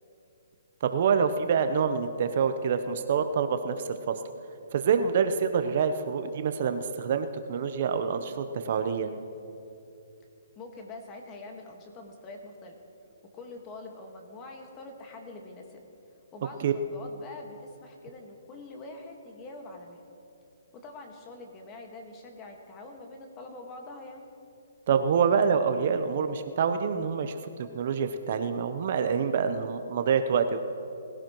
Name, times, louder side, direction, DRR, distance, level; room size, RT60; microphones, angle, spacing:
voice 1, 0.8-4.1 4.7-9.1 16.6-16.7 24.9-27.3 27.7-30.6, right 6 dB, 50° right, 9 dB, 0.8 m, -26 dB
voice 2, 10.5-12.8 13.3-15.8 16.3-20.0 20.7-24.2, left 2 dB, 20° left, 2 dB, 1.6 m, -45 dB
20.0 x 16.0 x 3.1 m, 2.8 s
hypercardioid pair, 155°, 0 cm